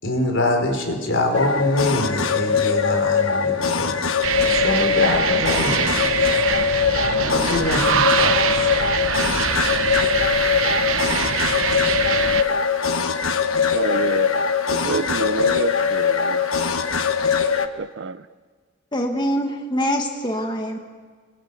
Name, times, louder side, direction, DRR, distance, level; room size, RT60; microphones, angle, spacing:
voice 1, 0.0-4.0 4.4-6.8 7.2-9.1, left 1 dB, 65° left, 3 dB, 4.3 m, -25 dB
sound 1, 1.3-17.7, left 6 dB, 85° left, 1.3 m, -21 dB
sound 2, 4.2-12.4, right 6 dB, 90° right, 1.2 m, -23 dB
voice 2, 13.6-16.5 17.8-18.3, right 4 dB, 60° right, 15 dB, 0.7 m, -28 dB
voice 3, 18.9-20.8, equal, 20° left, 3 dB, 1.5 m, -24 dB
26.0 x 21.5 x 8.2 m, 1.5 s
head